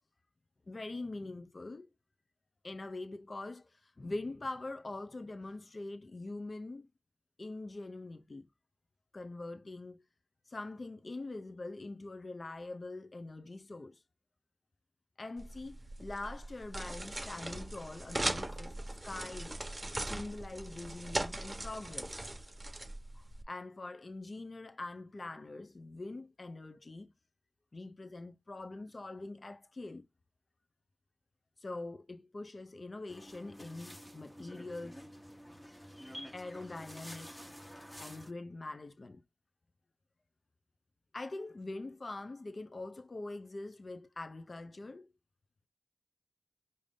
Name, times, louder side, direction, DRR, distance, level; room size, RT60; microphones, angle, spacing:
voice 1, 0.7-1.9 2.6-6.9 7.4-8.5 9.1-10.0 10.5-14.0 15.2-18.7 19.0-19.6 20.0-22.2 23.1-27.1 27.7-30.1 31.6-35.0 36.3-37.4 38.0-39.2 41.1-45.1, left 2 dB, 65° left, 0.6 m, -43 dB
sound 1, 15.4-23.4, right 1 dB, 35° right, 1.0 m, -40 dB
sound 2, 33.1-38.3, equal, 15° left, 1.2 m, -49 dB
5.0 x 2.7 x 3.6 m
wide cardioid pair, 55°, 0 cm